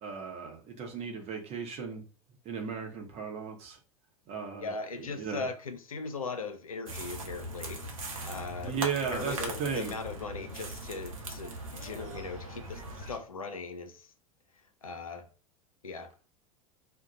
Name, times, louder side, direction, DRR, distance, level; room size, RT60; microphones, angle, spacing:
voice 1, 0.0-2.0 2.4-3.8 4.3-5.5 8.6-10.0, right 6 dB, 35° right, 0.8 m, -36 dB
voice 2, 4.6-7.8 8.2-8.8 9.1-14.1 14.8-15.3 15.8-16.3, left 4 dB, 80° left, 0.5 m, -39 dB
sound 1, 6.9-13.2, right 1 dB, 75° right, 0.7 m, -40 dB
2.4 x 2.2 x 3.9 m
figure-of-eight pair, 80°, 18 cm